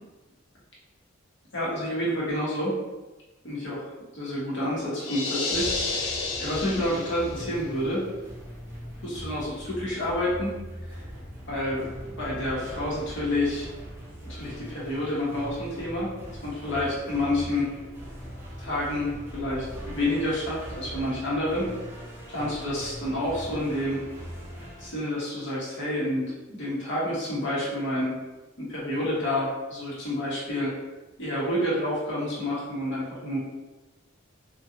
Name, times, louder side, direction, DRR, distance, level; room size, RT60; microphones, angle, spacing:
voice 1, 1.5-2.8 3.4-6.1 6.4-8.1 9.0-10.6 10.9-11.0 11.5-13.7 14.2-16.2 16.4-17.7 18.6-21.7 22.3-24.1 24.8-28.1 28.6-30.8 31.2-33.4, left 1 dB, 60° left, -6 dB, 0.9 m, -29 dB
sound 1, 5.0-7.5, left 3 dB, 85° left, 0.5 m, -31 dB
sound 2, 5.5-24.9, equal, 10° right, 0.4 m, -41 dB
2.5 x 2.3 x 2.6 m, 1.1 s
head